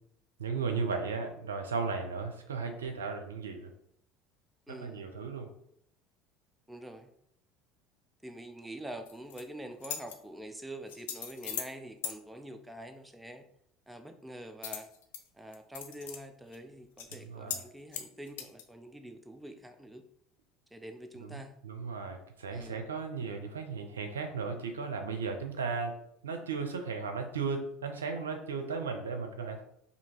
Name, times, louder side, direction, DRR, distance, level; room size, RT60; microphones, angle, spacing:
voice 1, 0.4-3.7 4.7-5.5 17.1-17.6 21.2-26.0 26.2-29.6, right 5 dB, 90° right, 5 dB, 0.5 m, -36 dB
voice 2, 4.7-5.1 6.7-7.1 8.2-13.4 13.9-14.9 15.3-20.0 20.7-21.5 22.5-22.8, right 1 dB, 10° right, 7 dB, 0.5 m, -45 dB
sound 1, 9.0-9.4 9.8-10.2 10.9-11.7 12.0-12.1 14.6-15.2 15.5-16.2 16.5-16.6 17.0-17.2 17.5-17.6 17.9-18.6, left 8 dB, 75° left, 0.5 m, -39 dB
2.8 x 2.8 x 4.3 m, 0.73 s
hypercardioid pair, 75°, 0 cm